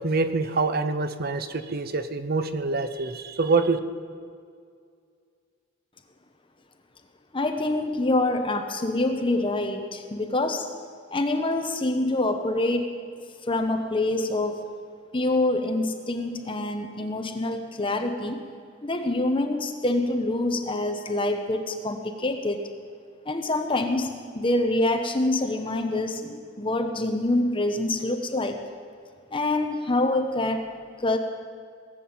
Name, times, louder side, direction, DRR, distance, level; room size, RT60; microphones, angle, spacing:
voice 1, 0.0-3.8, right 3 dB, 50° right, 10 dB, 0.8 m, -25 dB
voice 2, 7.3-10.7 11.1-13.0 13.5-14.7 15.1-18.4 18.8-22.6 23.3-28.6 29.3-30.7 31.0-31.2, left 2 dB, 25° left, 6 dB, 0.9 m, -26 dB
18.5 x 7.7 x 8.7 m, 2.2 s
head